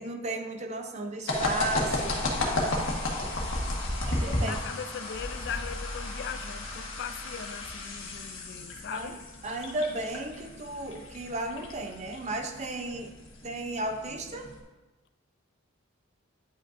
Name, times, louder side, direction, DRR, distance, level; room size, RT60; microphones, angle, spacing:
voice 1, 0.0-2.2 4.1-4.6 8.9-9.2 9.4-13.1 13.4-14.5, right 2 dB, 35° right, 5 dB, 0.5 m, -34 dB
sound 1, 1.3-14.6, left 2 dB, 70° left, 1.3 m, -34 dB
voice 2, 4.4-9.2, left 7 dB, 55° left, 11 dB, 0.3 m, -39 dB
sound 2, 5.1-9.7 11.5-11.6, equal, 20° left, 0.7 m, -43 dB
9.8 x 5.1 x 2.6 m, 1.2 s
head